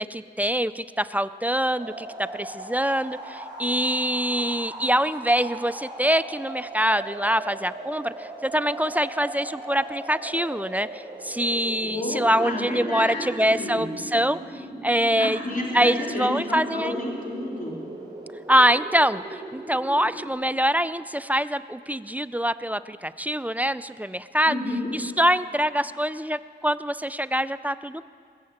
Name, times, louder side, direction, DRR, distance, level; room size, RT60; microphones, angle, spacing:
voice 1, 0.0-15.4 15.7-17.0 18.5-24.5 24.9-28.0, equal, 10° right, 14 dB, 0.4 m, -24 dB
sound 1, 1.8-20.3, right 2 dB, 25° right, 4.5 m, -39 dB
voice 2, 11.8-13.9 15.2-17.8 24.5-24.9, left 1 dB, 50° left, -2 dB, 2.9 m, -31 dB
21.0 x 7.3 x 8.6 m, 2.1 s
cardioid pair, 60°, 18 cm